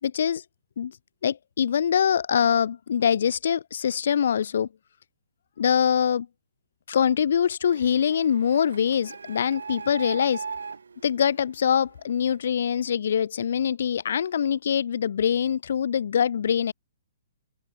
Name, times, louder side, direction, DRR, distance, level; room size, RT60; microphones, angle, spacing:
voice 1, 0.0-0.4 0.8-0.9 1.2-4.7 5.6-6.3 6.9-10.4 11.0-16.7, left 8 dB, 60° left, 3.1 m, -24 dB
Printer, 7.6-12.2, right 5 dB, 70° right, 2.2 m, -39 dB
open air
figure-of-eight pair, 120°, 0 cm